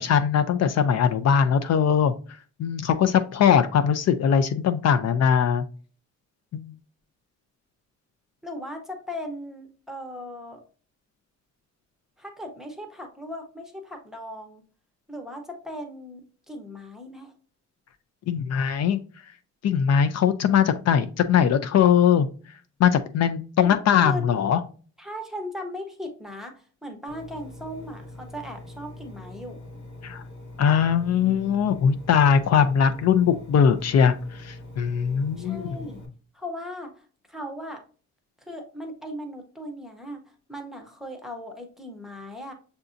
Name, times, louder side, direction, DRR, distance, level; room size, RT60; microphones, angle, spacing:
voice 1, 0.0-2.1 2.6-5.6 6.5-6.7 18.3-19.0 19.6-22.3 22.8-24.6 30.0-30.2 30.6-34.1 34.4-35.8, left 7 dB, 60° left, 10 dB, 0.4 m, -21 dB
voice 2, 8.4-10.6 12.2-14.6 15.1-17.3 23.6-24.3 25.0-29.6 35.4-36.0 36.3-37.8 38.5-40.2 40.5-42.5, left 1 dB, ahead, 4 dB, 0.7 m, -38 dB
Engine, 27.1-36.1, left 2 dB, 85° left, 1.3 m, -43 dB
6.8 x 2.6 x 2.4 m, 0.39 s
wide cardioid pair, 180°, 29 cm